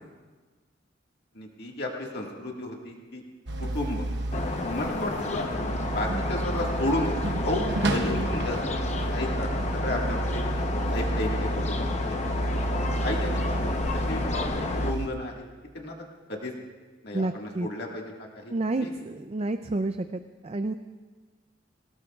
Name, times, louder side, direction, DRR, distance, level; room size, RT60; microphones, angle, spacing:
voice 1, 1.3-3.2 3.7-4.0 4.6-5.5 5.9-8.8 9.1-10.4 10.9-11.9 12.8-14.5 14.8-15.5 15.7-16.0 16.3-16.5 17.0-18.9, left 1 dB, 55° left, -1 dB, 1.8 m, -33 dB
sound 1, 3.5-15.1, right 1 dB, 65° right, 1.0 m, -30 dB
sound 2, 4.3-14.9, left 2 dB, 35° left, 0.9 m, -31 dB
voice 2, 17.1-17.7 18.5-20.7, right 2 dB, 35° right, 8 dB, 0.4 m, -30 dB
24.0 x 18.5 x 2.4 m, 1.3 s
head